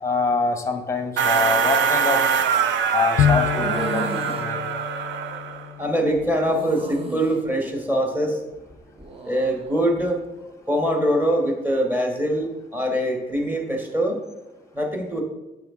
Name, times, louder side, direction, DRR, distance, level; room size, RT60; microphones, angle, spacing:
voice 1, 0.0-2.2 2.9-4.6, left 4 dB, 15° left, 7 dB, 0.8 m, -25 dB
sound 1, 1.2-5.7, right 7 dB, 70° right, 0.5 m, -23 dB
Bowed string instrument, 3.2-6.9, left 9 dB, 60° left, 0.4 m, -27 dB
sound 2, 3.5-4.5 6.4-7.4 8.9-9.6, right 4 dB, 30° right, 0.7 m, -34 dB
voice 2, 5.8-8.5 9.2-10.2 10.7-14.2 14.7-15.2, equal, 10° right, 2 dB, 1.3 m, -23 dB
8.4 x 3.6 x 3.6 m, 1.0 s
cardioid pair, 90°, 20 cm